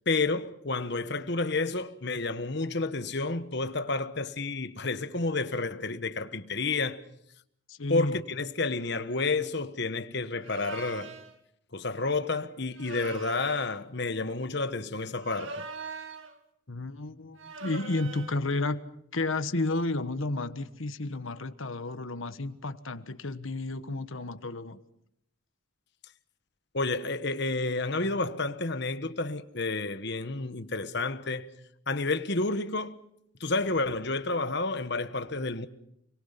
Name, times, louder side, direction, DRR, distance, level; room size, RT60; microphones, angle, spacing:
voice 1, 0.1-7.0 7.9-11.1 11.7-15.6 26.7-31.5 31.9-33.0 33.4-35.7, left 3 dB, 50° left, 1.3 m, -30 dB
voice 2, 7.7-8.2 16.7-18.8 19.1-24.8, left 2 dB, 70° left, 1.3 m, -32 dB
sound 1, 10.4-11.3 12.7-13.8 15.1-16.4 17.4-18.4, right 4 dB, 65° right, 2.1 m, -42 dB
29.5 x 23.5 x 5.8 m
head